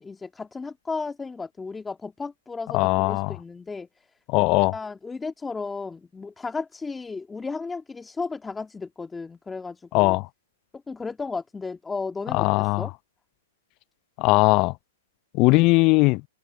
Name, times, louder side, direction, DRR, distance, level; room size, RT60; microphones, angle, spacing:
voice 1, 0.0-3.9 4.7-10.2 10.9-12.9, left 4 dB, 10° left, 1.9 m, -34 dB
voice 2, 2.7-3.3 4.3-4.7 9.9-10.3 12.3-12.9 14.2-14.7 15.3-16.2, left 24 dB, 40° left, 0.5 m, -19 dB
hypercardioid pair, 130°, 0 cm